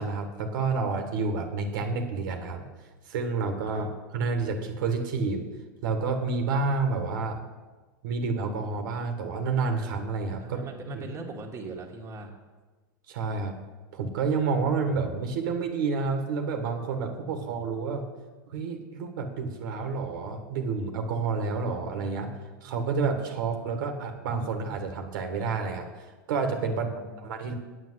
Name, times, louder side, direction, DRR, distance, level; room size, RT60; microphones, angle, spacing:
voice 1, 0.0-2.7 3.1-3.9 4.1-5.5 5.8-7.4 8.0-10.6 10.9-11.0 13.1-13.6 13.9-18.0 18.5-27.5, right 4 dB, 70° right, 5 dB, 1.7 m, -29 dB
voice 2, 10.4-12.3 26.7-27.2, right 3 dB, 25° right, 0 dB, 1.9 m, -40 dB
8.9 x 7.7 x 8.0 m, 1.3 s
hypercardioid pair, 120°, 11 cm